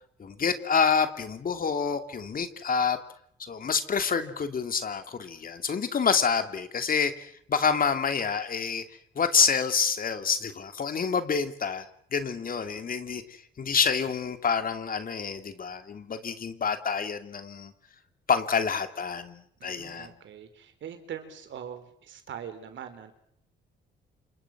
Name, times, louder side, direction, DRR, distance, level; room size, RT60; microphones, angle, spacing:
voice 1, 0.2-3.0 3.4-8.8 9.2-11.9 12.1-17.7 18.3-20.1, left 6 dB, 45° left, 9 dB, 2.8 m, -27 dB
voice 2, 19.6-23.1, right 8 dB, 70° right, 8 dB, 4.2 m, -42 dB
28.5 x 26.5 x 6.2 m, 0.68 s
cardioid pair, 90°, 20 cm